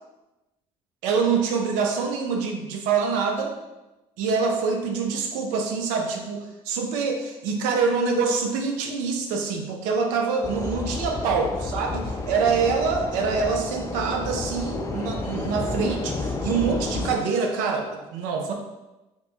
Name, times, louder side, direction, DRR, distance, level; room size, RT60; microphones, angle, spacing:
voice 1, 1.0-3.5 4.2-18.5, right 5 dB, 85° right, 3 dB, 0.5 m, -25 dB
sound 1, 10.4-17.2, left 3 dB, 25° left, 0.4 m, -31 dB
2.9 x 2.2 x 4.2 m, 1.0 s
supercardioid pair, 80°, 13 cm